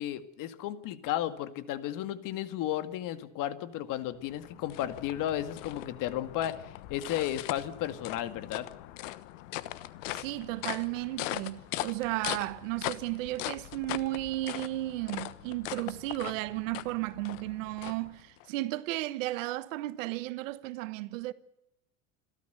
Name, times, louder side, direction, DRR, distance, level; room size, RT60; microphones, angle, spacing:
voice 1, 0.0-8.7, left 12 dB, 55° left, 2.0 m, -34 dB
sound 1, 4.0-18.5, left 16 dB, 80° left, 1.3 m, -40 dB
voice 2, 10.1-21.3, right 18 dB, 85° right, 1.3 m, -34 dB
27.5 x 13.0 x 8.0 m
supercardioid pair, 115°, 38 cm